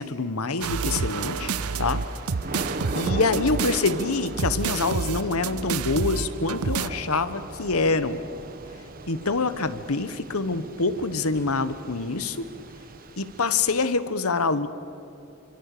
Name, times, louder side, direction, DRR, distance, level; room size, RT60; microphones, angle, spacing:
voice 1, 0.0-1.5 1.8-2.0 2.9-8.2 9.1-12.5 13.2-14.7, left 3 dB, 80° left, 13 dB, 1.2 m, -25 dB
sound 1, 0.6-6.9, right 5 dB, 85° right, 0.7 m, -29 dB
Thunder / Rain, 0.9-13.9, right 2 dB, 40° right, 1.4 m, -39 dB
29.0 x 25.0 x 6.8 m, 2.9 s
head